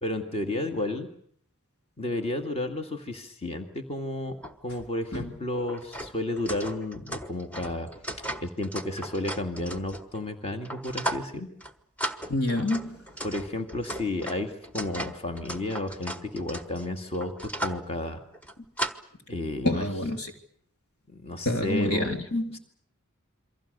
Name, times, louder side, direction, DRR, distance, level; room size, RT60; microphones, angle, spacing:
voice 1, 0.0-1.1 2.0-4.4 4.6-7.9 8.4-11.5 13.2-18.2 19.3-19.8 21.1-22.1 22.5-22.6, left 1 dB, 30° left, 6 dB, 2.1 m, -32 dB
sound 1, 4.4-4.5 4.8-4.9 5.5-10.2 10.6-11.3 11.6-11.7 12.0-17.8 18.3-18.9, right 1 dB, 5° left, 1.2 m, -36 dB
voice 2, 12.3-13.0 19.6-20.3 21.4-22.6, left 1 dB, 80° left, 5 dB, 3.5 m, -27 dB
28.0 x 23.5 x 6.8 m, 0.64 s
head